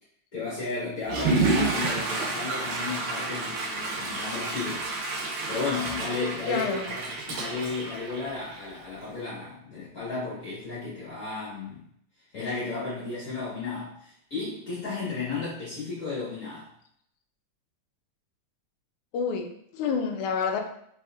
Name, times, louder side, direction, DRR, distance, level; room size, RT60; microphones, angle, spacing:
voice 1, 0.3-4.9 5.1-11.8 12.3-16.7, left 4 dB, 55° left, -9 dB, 1.0 m, -33 dB
Water / Toilet flush, 1.0-8.8, right 4 dB, 80° right, 2.1 m, -30 dB
voice 2, 6.5-6.9 19.1-20.6, left 6 dB, 85° left, 3 dB, 2.0 m, -28 dB
5.4 x 3.4 x 2.3 m, 0.71 s
omnidirectional pair, 3.4 m